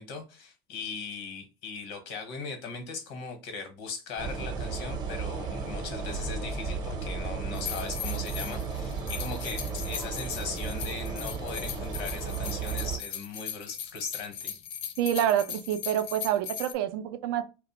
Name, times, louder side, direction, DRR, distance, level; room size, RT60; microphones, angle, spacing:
voice 1, 0.0-14.5, left 5 dB, 80° left, 0.9 m, -39 dB
sound 1, 4.2-13.0, right 5 dB, 35° right, 0.6 m, -34 dB
sound 2, 7.5-16.7, left 9 dB, 60° left, 0.4 m, -39 dB
voice 2, 15.0-17.4, right 11 dB, 90° right, 0.4 m, -27 dB
2.4 x 2.1 x 2.9 m
cardioid pair, 130°, 12 cm